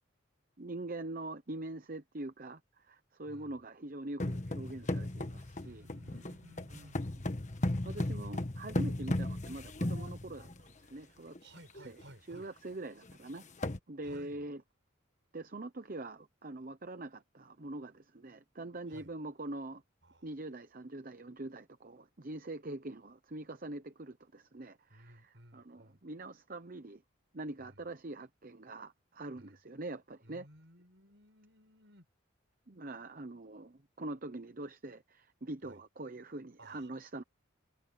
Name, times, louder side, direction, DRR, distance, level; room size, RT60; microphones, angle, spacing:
voice 1, 0.6-5.9 6.7-6.9 7.8-10.5 10.8-11.4 11.8-12.0 12.3-13.4 13.9-14.6 15.3-19.8 20.2-27.0 27.3-30.5 32.7-37.2, right 2 dB, 40° right, 0.9 m, -44 dB
voice 2, 3.3-3.6 5.6-7.0 11.0-12.5 14.0-14.4 18.9-19.1 20.0-20.3 24.9-26.0 27.6-27.8 29.4-29.6 30.2-32.1 35.6-35.8 36.6-36.9, right 1 dB, 60° right, 7.4 m, -57 dB
sound 1, 4.2-10.7 11.3-11.4 11.7-12.0 12.4-12.5 13.1-13.2 13.4-13.8, left 1 dB, 35° left, 1.4 m, -36 dB
head